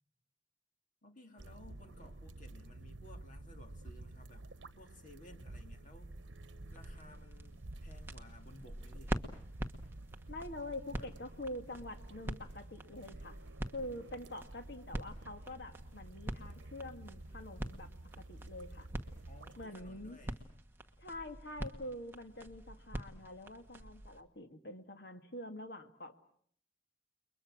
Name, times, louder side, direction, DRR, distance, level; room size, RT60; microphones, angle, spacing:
voice 1, 1.0-4.5 4.8-6.2 6.7-9.2 10.9-11.1 19.3-20.4, left 1 dB, 45° left, 5 dB, 2.5 m, -57 dB
sound 1, 1.4-19.7, right 2 dB, 85° right, 0.9 m, -51 dB
sound 2, 6.7-24.2, equal, 10° right, 1.3 m, -45 dB
voice 2, 10.3-13.4 13.7-17.9 18.2-18.9 19.6-20.2 21.0-26.2, left 1 dB, 60° left, 6 dB, 2.0 m, -46 dB
29.5 x 22.5 x 6.3 m, 0.62 s
head